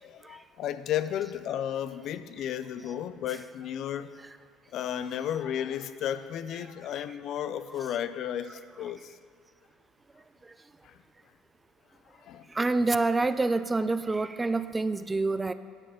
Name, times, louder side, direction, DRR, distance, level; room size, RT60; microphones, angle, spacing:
voice 1, 0.0-4.1 4.7-9.2 10.8-11.0 12.1-12.5, left 10 dB, 60° left, 12 dB, 0.4 m, -33 dB
voice 2, 12.6-15.5, right 3 dB, 15° right, 13 dB, 0.3 m, -27 dB
9.8 x 4.2 x 6.8 m, 2.2 s
supercardioid pair, 95°, 0 cm